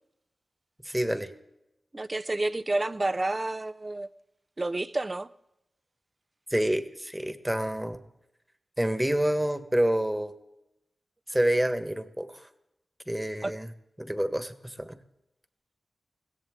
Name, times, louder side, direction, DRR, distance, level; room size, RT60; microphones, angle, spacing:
voice 1, 0.8-1.3 6.5-8.0 8.8-10.3 11.3-12.5 13.1-13.7 14.0-15.0, right 1 dB, 10° right, 1.4 m, -28 dB
voice 2, 1.9-4.1 4.6-5.3 13.4-13.5, right 2 dB, 35° right, 0.6 m, -29 dB
21.5 x 16.5 x 3.7 m
cardioid pair, 50°, 0 cm